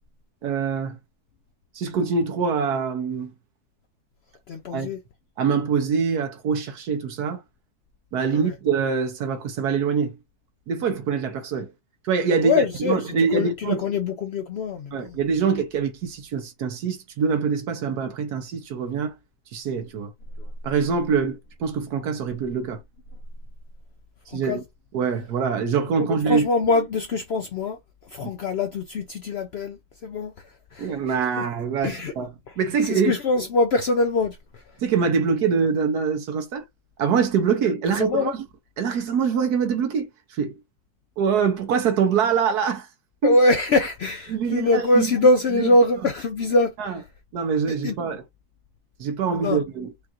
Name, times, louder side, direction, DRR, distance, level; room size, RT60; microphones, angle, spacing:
voice 1, 0.4-1.0 1.7-3.3 4.7-4.9 5.4-7.4 8.1-10.2 10.7-11.7 12.0-13.8 14.9-19.1 19.5-20.1 20.6-22.8 24.3-24.6 24.9-26.5 28.2-28.3 30.8-33.1 34.8-36.6 37.0-38.5 38.8-40.5 41.2-42.9 43.2-43.4 44.3-45.1 45.5-45.7 46.8-47.0 47.3-48.2 49.0-49.9, right 6 dB, 80° right, 1.4 m, -24 dB
voice 2, 4.5-5.0 12.4-15.2 24.3-24.6 26.0-27.8 28.1-29.8 30.0-30.3 30.7-31.0 31.4-31.5 31.8-32.1 32.9-34.4 38.0-38.3 43.2-47.0 47.7-47.9 49.3-49.6, left 2 dB, 80° left, 0.5 m, -23 dB
5.0 x 2.4 x 2.9 m
omnidirectional pair, 1.7 m